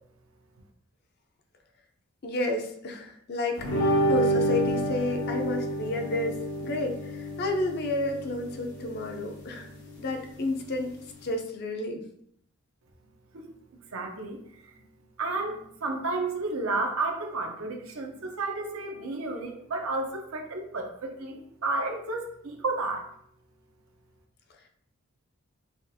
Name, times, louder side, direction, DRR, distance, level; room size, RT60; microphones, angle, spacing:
voice 1, 2.2-3.7 4.1-9.7 10.0-10.9 11.2-12.0, left 2 dB, 50° left, 4 dB, 0.5 m, -31 dB
sound 1, 3.6-11.3, right 1 dB, 75° left, 1.0 m, -30 dB
voice 2, 13.9-14.8 15.2-23.1, right 3 dB, 75° right, 2 dB, 0.8 m, -32 dB
5.8 x 2.4 x 2.7 m, 0.69 s
head